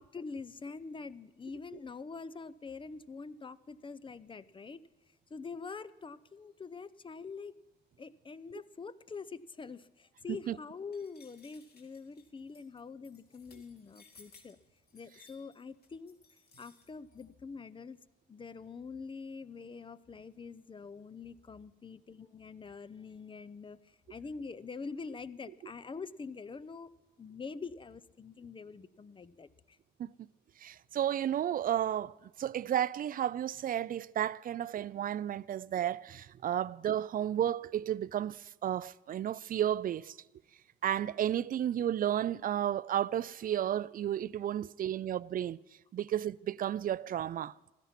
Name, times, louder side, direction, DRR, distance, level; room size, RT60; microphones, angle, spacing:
voice 1, 0.0-4.8 5.3-7.6 8.0-14.6 14.9-16.2 16.6-18.0 18.3-26.9 27.2-29.8, left 4 dB, 25° left, 0.6 m, -45 dB
sound 1, 10.9-17.2, left 4 dB, 55° left, 2.7 m, -61 dB
voice 2, 30.6-40.2 40.8-45.6 45.9-47.5, right 10 dB, 45° right, 0.4 m, -32 dB
16.0 x 12.5 x 5.9 m
cardioid pair, 90°, 20 cm